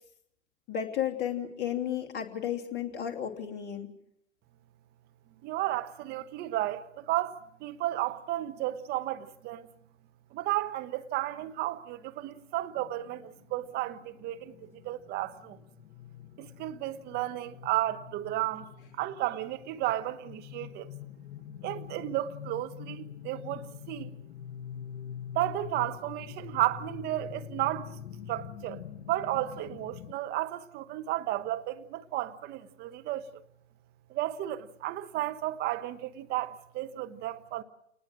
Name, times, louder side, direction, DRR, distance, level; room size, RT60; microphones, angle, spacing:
voice 1, 0.7-3.9, left 9 dB, 25° left, 2.8 m, -33 dB
voice 2, 5.4-9.7 10.3-15.6 16.4-18.7 19.0-20.9 21.6-24.1 25.3-27.9 28.3-28.8 29.1-33.4 34.1-37.6, right 15 dB, 25° right, 1.2 m, -33 dB
sound 1, 12.8-30.1, left 9 dB, 65° left, 1.4 m, -45 dB
28.0 x 20.0 x 7.5 m
hypercardioid pair, 130°, 39 cm